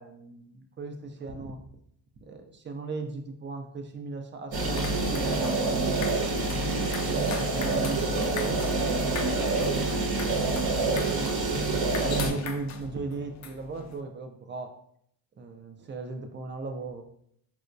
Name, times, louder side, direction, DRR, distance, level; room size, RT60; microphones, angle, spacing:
voice 1, 0.0-1.6 2.2-5.8 7.0-8.6 9.2-10.4 11.1-11.7 11.9-14.7 15.4-17.0, right 3 dB, 25° right, 6 dB, 0.4 m, -37 dB
sound 1, 4.5-14.0, left 6 dB, 40° left, 0.4 m, -42 dB
sound 2, 4.5-12.3, right 3 dB, 50° right, 0.8 m, -27 dB
4.3 x 2.1 x 2.5 m, 0.68 s
supercardioid pair, 80°, 47 cm